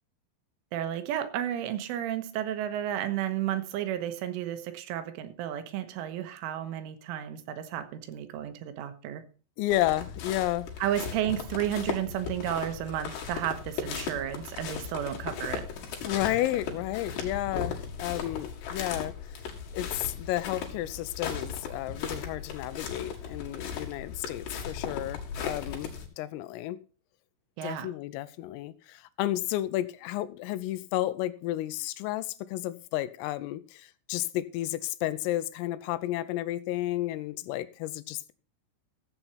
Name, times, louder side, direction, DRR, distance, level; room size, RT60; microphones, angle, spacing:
voice 1, 0.7-9.2 10.8-15.7 27.6-27.9, right 11 dB, 80° right, 3.5 m, -32 dB
voice 2, 9.6-10.7 16.1-19.4 19.7-25.9 26.2-26.8 27.6-38.3, left 15 dB, 85° left, 3.4 m, -32 dB
sound 1, 9.7-26.1, left 6 dB, 60° left, 3.8 m, -37 dB
15.0 x 7.9 x 4.3 m
omnidirectional pair, 5.9 m